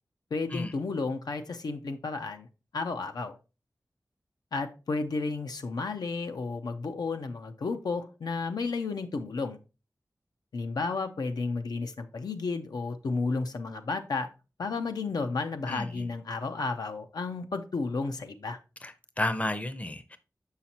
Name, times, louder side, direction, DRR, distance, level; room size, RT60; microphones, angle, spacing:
voice 1, 0.3-2.5 2.7-3.3 4.5-9.6 10.5-14.3 14.6-18.6, left 3 dB, 90° left, 0.6 m, -32 dB
voice 2, 15.7-16.1 18.8-20.2, left 1 dB, 20° left, 0.6 m, -32 dB
6.3 x 5.6 x 2.8 m
wide cardioid pair, 85°, 7 cm